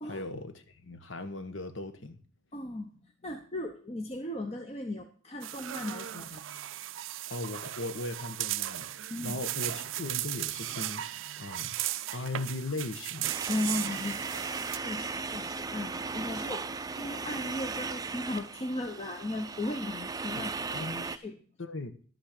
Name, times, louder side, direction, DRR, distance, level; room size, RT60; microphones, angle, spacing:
voice 1, 0.0-2.2 7.3-11.8 12.1-13.3 20.3-21.1 21.6-21.9, left 2 dB, 75° left, 1.3 m, -38 dB
voice 2, 2.5-6.4 9.1-9.4 13.5-16.7 17.0-21.4, left 1 dB, 30° left, 0.9 m, -37 dB
sound 1, 5.4-14.8, right 14 dB, 80° right, 0.4 m, -36 dB
sound 2, 13.2-21.2, right 4 dB, 20° right, 0.5 m, -37 dB
12.0 x 6.4 x 6.6 m
head